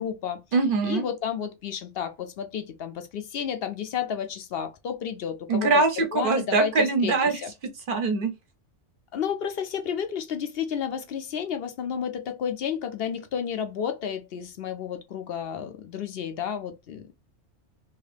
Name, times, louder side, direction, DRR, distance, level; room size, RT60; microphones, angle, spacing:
voice 1, 0.0-0.4 0.8-5.7 6.1-6.7 7.0-7.5 9.1-17.0, left 8 dB, 65° left, 0.8 m, -31 dB
voice 2, 0.5-1.0 5.5-7.4 7.9-8.3, right 3 dB, 50° right, 0.9 m, -23 dB
2.9 x 2.8 x 3.2 m
omnidirectional pair, 1.2 m